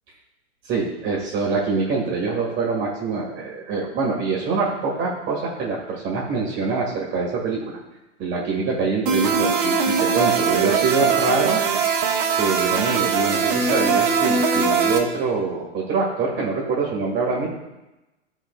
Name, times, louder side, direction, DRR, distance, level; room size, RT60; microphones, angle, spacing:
voice 1, 0.7-7.6 8.2-11.6 12.4-17.5, right 4 dB, 30° right, -4 dB, 2.0 m, -24 dB
sound 1, 9.1-15.0, right 5 dB, 45° right, 1.6 m, -21 dB
14.0 x 5.0 x 2.4 m, 1.0 s
hypercardioid pair, 110°, 37 cm